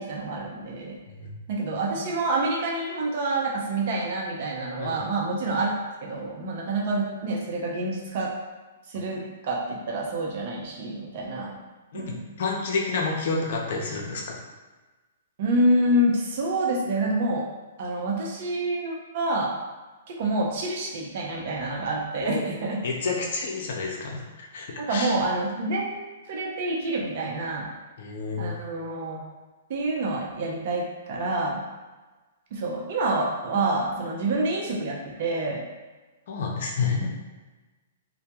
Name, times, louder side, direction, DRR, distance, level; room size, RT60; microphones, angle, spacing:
voice 1, 0.0-1.0 1.5-5.7 6.0-8.3 8.9-11.6 11.9-12.4 15.4-17.5 17.8-19.5 20.1-22.8 24.8-26.0 26.3-27.7 28.4-29.2 29.7-31.6 32.5-35.6 37.0-37.1, right 2 dB, 55° right, -2 dB, 0.6 m, -27 dB
voice 2, 11.9-14.2 22.2-22.4 22.8-25.2 28.0-28.5 36.3-37.0, left 4 dB, 60° left, -1 dB, 0.6 m, -29 dB
2.2 x 2.1 x 2.8 m, 1.2 s
hypercardioid pair, 125°, 0 cm